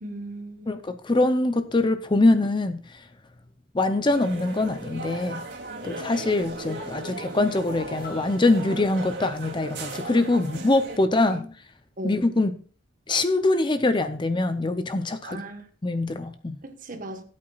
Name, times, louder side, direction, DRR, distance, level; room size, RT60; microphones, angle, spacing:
voice 1, 0.0-0.7 11.3-11.5 12.0-12.3 15.2-15.7 16.6-17.2, right 1 dB, 45° right, 1.3 m, -37 dB
voice 2, 0.7-3.0 3.7-5.4 5.8-11.4 12.0-12.5 13.1-15.4 15.8-16.6, left 2 dB, 25° left, 0.6 m, -23 dB
sound 1, 4.1-11.0, right 2 dB, 60° right, 2.4 m, -37 dB
sound 2, 6.0-9.5 9.8-9.9, left 1 dB, 45° left, 2.4 m, -43 dB
17.5 x 8.6 x 2.4 m
head